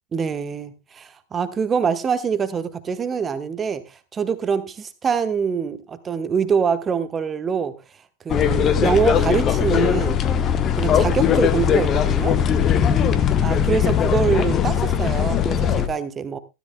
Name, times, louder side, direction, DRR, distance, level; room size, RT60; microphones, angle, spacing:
voice 1, 0.1-7.7 8.2-10.2 10.7-12.4 13.4-16.4, right 6 dB, 20° right, 1.2 m, -24 dB
sound 1, 8.3-15.9, left 8 dB, 30° left, 1.1 m, -19 dB
15.0 x 13.5 x 2.3 m
figure-of-eight pair, 90°, 0 cm